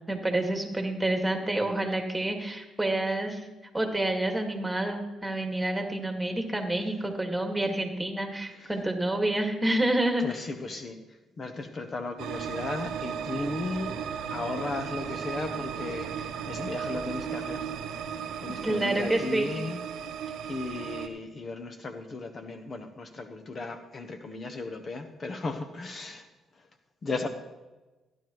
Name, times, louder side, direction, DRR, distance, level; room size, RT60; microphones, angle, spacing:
voice 1, 0.1-3.4 3.7-10.4 18.6-19.5, right 1 dB, 10° right, 3 dB, 1.9 m, -28 dB
voice 2, 10.2-11.0 11.4-14.0 14.3-17.7 18.4-20.2 20.4-26.2 27.0-27.3, left 3 dB, 40° left, 7 dB, 0.9 m, -36 dB
sound 1, 12.2-21.1, right 7 dB, 85° right, 0.8 m, -35 dB
15.0 x 10.5 x 3.1 m, 1.1 s
cardioid pair, 90°, 0 cm